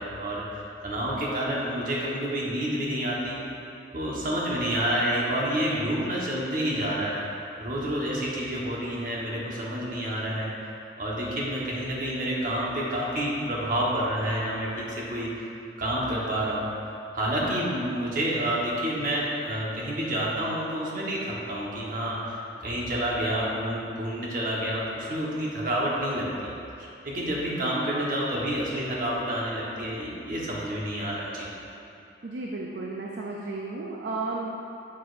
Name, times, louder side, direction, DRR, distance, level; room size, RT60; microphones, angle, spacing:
voice 1, 0.0-3.4 3.9-7.2 7.6-10.5 11.0-15.3 15.8-26.5 27.0-31.5, right 1 dB, 50° right, -5 dB, 1.1 m, -29 dB
voice 2, 32.2-34.5, right 3 dB, 75° right, -1 dB, 0.5 m, -33 dB
7.4 x 6.1 x 2.5 m, 2.7 s
head